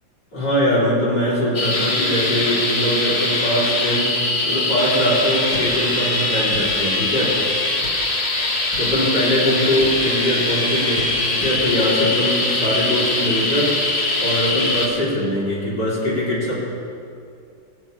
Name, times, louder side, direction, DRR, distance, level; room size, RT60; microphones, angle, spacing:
voice 1, 0.3-4.1 4.4-7.4 8.8-13.8 14.2-16.6, equal, 60° left, -8 dB, 4.5 m, -21 dB
sound 1, 1.5-14.9, left 2 dB, 35° left, 1.9 m, -22 dB
sound 2, 5.5-5.7 6.5-6.7 7.8-8.0 8.7-8.9 9.8-9.9 11.0-11.1 11.4-11.6, left 1 dB, 75° left, 3.8 m, -34 dB
22.0 x 17.0 x 3.5 m, 2.4 s
omnidirectional pair, 2.1 m